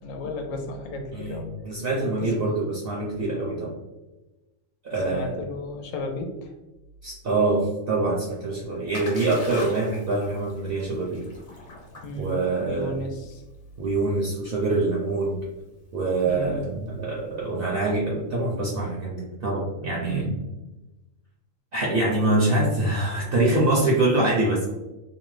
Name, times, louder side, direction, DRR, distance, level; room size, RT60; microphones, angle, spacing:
voice 1, 0.0-1.5 5.1-6.5 12.0-13.4 16.2-16.6 20.0-20.3, left 1 dB, 85° left, 3 dB, 1.0 m, -33 dB
voice 2, 1.1-3.7 4.8-5.4 7.0-11.3 12.2-13.0 13.8-15.4 15.9-20.4 21.7-24.7, right 2 dB, 60° right, -4 dB, 0.7 m, -25 dB
Splash splatter, 8.2-18.1, left 1 dB, 50° left, 1.0 m, -44 dB
2.8 x 2.0 x 3.1 m, 1.0 s
omnidirectional pair, 1.4 m